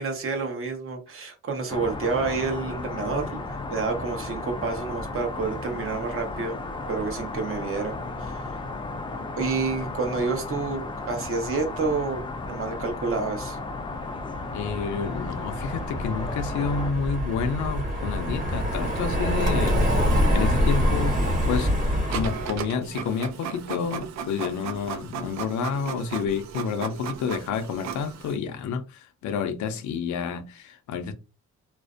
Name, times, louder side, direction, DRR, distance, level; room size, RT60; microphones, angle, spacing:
voice 1, 0.0-6.6 6.9-8.4 9.4-10.8 11.1-13.6, right 4 dB, 45° right, 0.8 m, -29 dB
sound 1, 1.7-16.9, left 3 dB, 15° left, 0.3 m, -34 dB
Car passing by, 14.2-22.7, equal, 25° right, 1.2 m, -25 dB
voice 2, 14.5-19.9 20.3-21.2 21.5-21.7 22.1-31.1, left 6 dB, 75° left, 0.5 m, -29 dB
Printer, 22.1-28.4, right 8 dB, 65° right, 0.5 m, -36 dB
2.5 x 2.0 x 2.4 m
cardioid pair, 90°, 30 cm